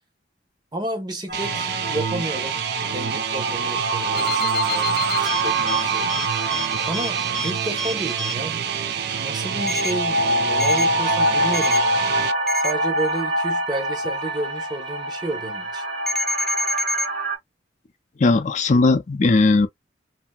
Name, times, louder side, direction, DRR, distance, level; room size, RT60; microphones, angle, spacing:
voice 1, 0.7-6.4 6.8-8.6 9.2-12.3 12.5-15.8, right 2 dB, 25° right, 0.9 m, -32 dB
sound 1, 1.3-12.3, right 9 dB, 65° right, 0.4 m, -28 dB
sound 2, 1.3-17.4, right 1 dB, 80° right, 1.5 m, -25 dB
sound 3, 4.2-8.3 9.7-9.9 10.6-10.9 11.5-11.8 12.5-12.7 16.1-17.1, left 1 dB, ahead, 0.6 m, -28 dB
voice 2, 18.2-19.7, left 3 dB, 45° left, 0.5 m, -17 dB
2.8 x 2.7 x 2.2 m
head